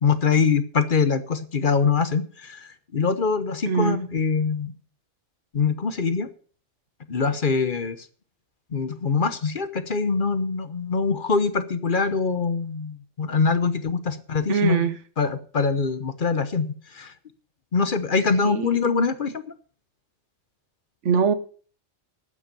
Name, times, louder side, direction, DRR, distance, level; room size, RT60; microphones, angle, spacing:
voice 1, 0.0-4.7 5.5-6.3 7.1-8.1 8.7-14.8 15.2-16.7 16.9-17.1 17.7-19.4, left 5 dB, 50° left, 13 dB, 1.0 m, -23 dB
voice 2, 3.7-4.0 14.5-15.0 18.4-18.9 21.0-21.3, right 6 dB, 80° right, 13 dB, 1.4 m, -23 dB
12.0 x 8.7 x 6.8 m, 0.42 s
omnidirectional pair, 1.2 m